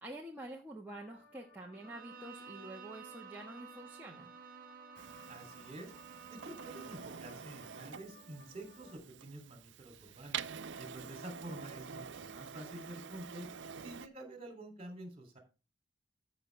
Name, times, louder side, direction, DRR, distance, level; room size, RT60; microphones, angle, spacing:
voice 1, 0.0-4.3, right 1 dB, 10° right, -3 dB, 1.4 m, -47 dB
sound 1, 0.9-9.0, left 4 dB, 30° left, 3.7 m, -61 dB
Bowed string instrument, 1.7-7.2, right 7 dB, 50° right, 1.3 m, -53 dB
Printer, 5.0-14.1, right 7 dB, 75° right, 0.5 m, -47 dB
voice 2, 5.3-5.9 6.3-10.4 10.8-13.5 13.8-15.4, right 1 dB, 30° right, 6 dB, 3.0 m, -48 dB
14.5 x 5.7 x 3.3 m, 0.31 s
head